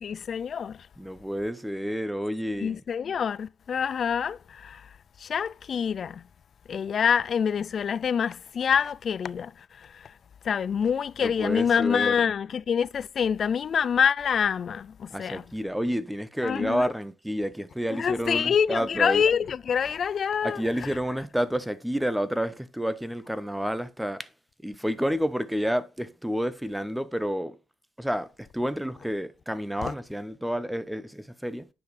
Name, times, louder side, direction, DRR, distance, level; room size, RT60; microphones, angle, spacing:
voice 1, 0.0-0.9 2.6-4.9 5.2-6.2 6.7-10.1 10.4-15.4 16.4-16.9 17.9-20.6 29.8-29.9, left 7 dB, 50° left, 0.3 m, -26 dB
voice 2, 1.0-2.8 11.2-12.2 15.1-19.2 20.4-24.3 24.6-27.6 28.0-31.7, equal, 5° right, 0.8 m, -30 dB
9.7 x 5.9 x 3.3 m
cardioid pair, 90°, 0 cm